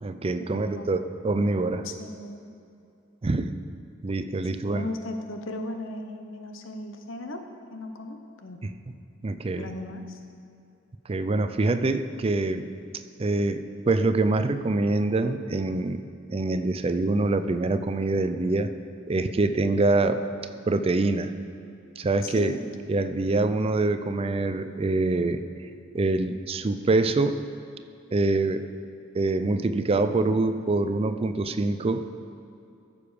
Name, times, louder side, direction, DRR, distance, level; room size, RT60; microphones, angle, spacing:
voice 1, 0.0-1.9 3.2-3.5 4.0-4.9 8.6-8.7 9.2-9.7 11.1-12.7 13.2-18.7 19.1-20.3 20.7-21.3 22.0-22.6 22.9-25.7 25.9-27.4 28.1-28.7 29.1-32.2, right 2 dB, 30° right, 10 dB, 0.4 m, -25 dB
voice 2, 0.5-0.9 1.8-2.5 4.7-7.4 7.7-8.6 9.5-10.2 22.2-22.7, left 2 dB, 85° left, 6 dB, 1.0 m, -37 dB
14.0 x 6.9 x 5.0 m, 2.6 s
head